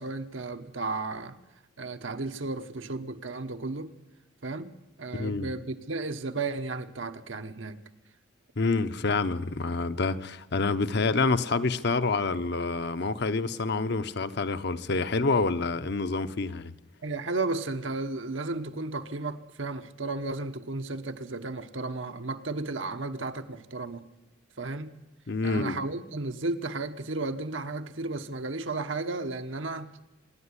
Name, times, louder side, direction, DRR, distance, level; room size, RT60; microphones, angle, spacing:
voice 1, 0.0-1.4 1.8-3.9 4.4-4.7 5.0-7.8 17.0-24.0 24.6-24.9 25.4-29.9, right 3 dB, 75° right, 1.2 m, -34 dB
voice 2, 5.1-5.5 8.6-16.7 25.3-25.8, left 3 dB, 55° left, 0.8 m, -27 dB
25.5 x 10.5 x 9.8 m
head